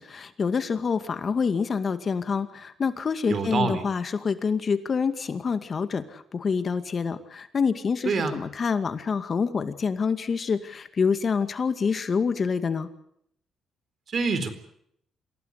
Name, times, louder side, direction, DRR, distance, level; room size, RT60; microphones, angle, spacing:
voice 1, 0.0-12.9, left 5 dB, 45° left, 10 dB, 2.2 m, -27 dB
voice 2, 3.3-3.8 8.0-8.3 14.1-14.5, right 4 dB, 50° right, 12 dB, 4.2 m, -26 dB
27.5 x 17.0 x 8.3 m, 0.71 s
cardioid pair, 90°, 0 cm